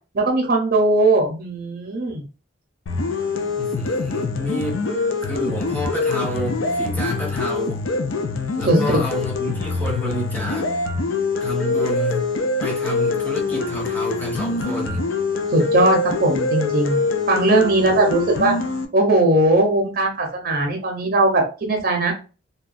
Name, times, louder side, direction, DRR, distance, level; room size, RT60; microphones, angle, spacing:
voice 1, 0.1-2.2 8.7-9.0 15.5-17.0 17.3-18.5 18.9-22.1, right 2 dB, 50° right, 0.6 m, -19 dB
sound 1, 2.9-18.9, left 3 dB, 80° left, 0.4 m, -24 dB
voice 2, 3.2-4.8 5.2-7.8 8.6-10.7 11.4-15.1, left 1 dB, 10° left, 0.9 m, -29 dB
2.8 x 2.2 x 2.4 m
head